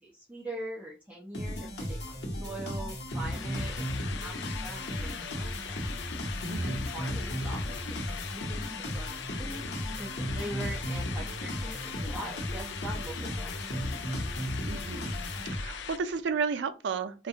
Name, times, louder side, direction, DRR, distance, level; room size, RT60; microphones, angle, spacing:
voice 1, 0.0-5.8 6.6-14.2, right 1 dB, 10° right, 0.5 m, -43 dB
sound 1, 1.3-15.9, equal, 70° left, 0.8 m, -35 dB
sound 2, 3.1-16.0, left 8 dB, 90° left, 0.3 m, -41 dB
voice 2, 14.7-15.1 15.5-17.3, right 5 dB, 85° right, 0.4 m, -32 dB
2.4 x 2.2 x 2.7 m
head